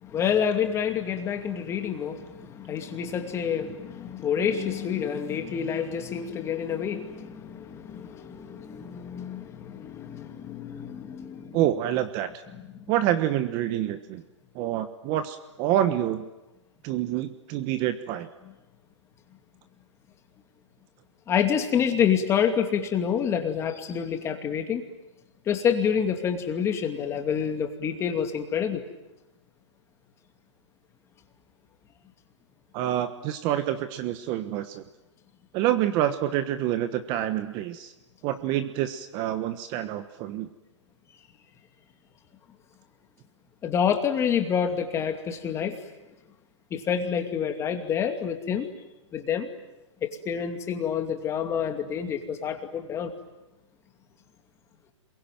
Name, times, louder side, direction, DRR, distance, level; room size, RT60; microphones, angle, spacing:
voice 1, 0.0-11.6 12.6-12.7 21.3-24.8 25.5-28.8 43.6-45.8 46.7-48.7 49.1-49.5 50.0-53.1, left 8 dB, 15° left, 5 dB, 2.5 m, -28 dB
voice 2, 11.5-12.3 12.9-14.2 14.5-16.3 16.8-18.3 32.7-34.8 35.5-37.9 38.2-40.5, right 12 dB, 30° right, 10 dB, 1.3 m, -27 dB
27.0 x 22.5 x 9.3 m, 1.0 s
hypercardioid pair, 145°, 16 cm